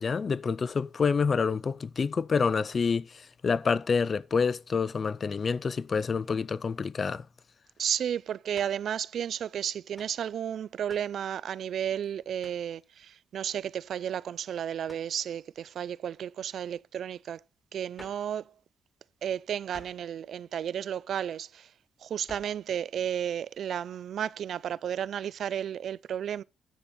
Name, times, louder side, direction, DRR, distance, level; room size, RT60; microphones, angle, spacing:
voice 1, 0.0-7.2, left 5 dB, 35° left, 0.4 m, -28 dB
voice 2, 7.8-17.4 17.7-18.5 19.2-21.7 22.0-26.4, right 9 dB, 65° right, 0.4 m, -33 dB
sound 1, 8.5-8.8 9.9-10.2 10.9-11.2 12.4-12.7 14.9-15.2 17.9-18.3 19.7-20.1 22.3-22.6, left 1 dB, 15° left, 1.5 m, -51 dB
10.0 x 8.1 x 4.2 m
cardioid pair, 130°, 0 cm